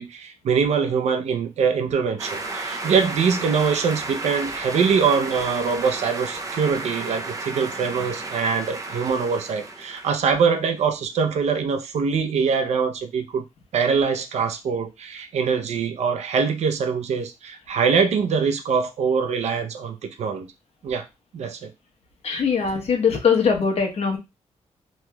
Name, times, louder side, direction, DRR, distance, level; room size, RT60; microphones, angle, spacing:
voice 1, 0.0-13.5 13.7-20.5 20.8-21.0 21.3-21.7, right 6 dB, 70° right, 6 dB, 0.6 m, -23 dB
sound 1, 2.2-10.5, right 3 dB, 30° right, 0.5 m, -33 dB
voice 2, 22.2-24.2, left 6 dB, 60° left, 2 dB, 1.0 m, -21 dB
3.1 x 2.9 x 2.2 m, 0.24 s
cardioid pair, 105°, 12 cm